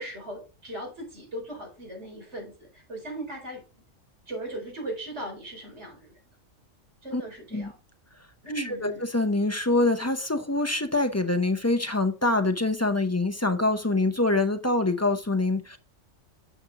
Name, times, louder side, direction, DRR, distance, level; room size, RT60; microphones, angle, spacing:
voice 1, 0.0-3.6 4.3-6.2 7.0-7.7 8.4-9.0, right 1 dB, 60° right, 4.5 m, -38 dB
voice 2, 8.6-15.8, left 2 dB, 20° left, 0.5 m, -25 dB
8.1 x 6.0 x 3.8 m
omnidirectional pair, 1.3 m